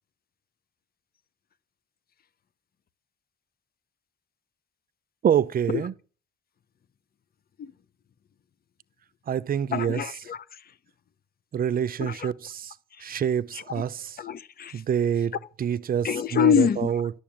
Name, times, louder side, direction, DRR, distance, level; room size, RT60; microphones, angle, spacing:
voice 1, 5.2-5.9 9.3-10.0 11.5-12.7 13.0-14.1 14.7-17.1, right 8 dB, 45° right, 0.6 m, -26 dB
voice 2, 9.7-10.6 12.0-12.3 13.0-13.2 13.5-13.8 14.2-14.8 15.2-15.3 16.0-16.9, left 8 dB, 50° left, 0.9 m, -26 dB
11.5 x 6.9 x 7.4 m
cardioid pair, 90°, 20 cm